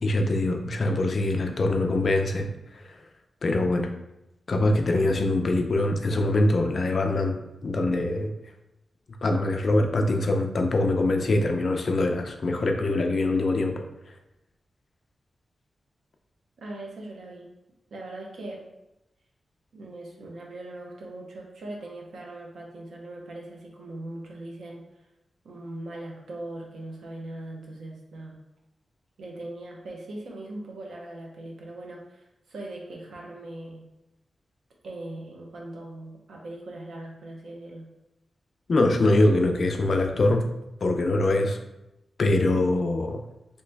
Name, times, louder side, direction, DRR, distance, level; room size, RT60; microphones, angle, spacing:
voice 1, 0.0-2.9 3.4-3.9 4.5-8.3 9.2-13.8 38.7-40.4 40.8-41.6 42.2-43.2, left 2 dB, 45° left, 4 dB, 0.4 m, -23 dB
voice 2, 16.6-17.5 17.9-18.6 19.7-24.8 25.4-28.4 29.2-33.8 34.8-37.9, right 1 dB, 85° right, -1 dB, 0.8 m, -40 dB
3.1 x 3.0 x 3.3 m, 0.92 s
wide cardioid pair, 170°, 0 cm